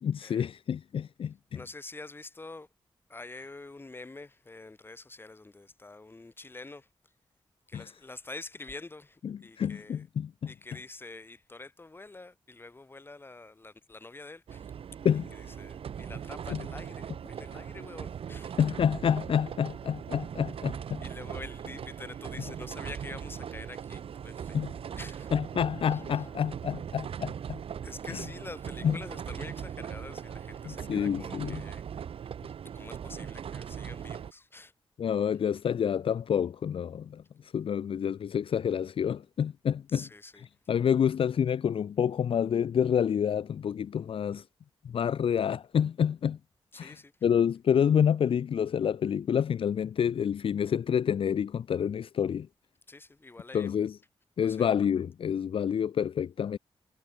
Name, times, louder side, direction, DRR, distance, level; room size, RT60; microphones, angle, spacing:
voice 1, 0.0-1.6 7.7-7.9 9.2-10.5 15.0-15.3 16.5-16.6 18.6-21.0 24.5-24.7 25.3-27.6 28.1-28.2 28.8-29.0 30.7-31.6 35.0-40.0 40.7-44.4 44.8-46.4 46.8-47.0 47.2-52.5 53.5-53.9 54.4-56.6, left 8 dB, 65° left, 0.5 m, -28 dB
voice 2, 1.5-2.7 3.1-6.9 7.7-10.0 10.5-14.7 15.3-18.6 21.0-24.6 25.0-25.3 25.9-26.2 27.8-31.8 32.7-34.7 39.9-40.4 46.7-47.1 52.9-53.7 54.4-54.7, left 2 dB, 20° left, 6.0 m, -46 dB
sound 1, 14.5-34.3, right 8 dB, 70° right, 0.6 m, -40 dB
wide cardioid pair, 160°, 10 cm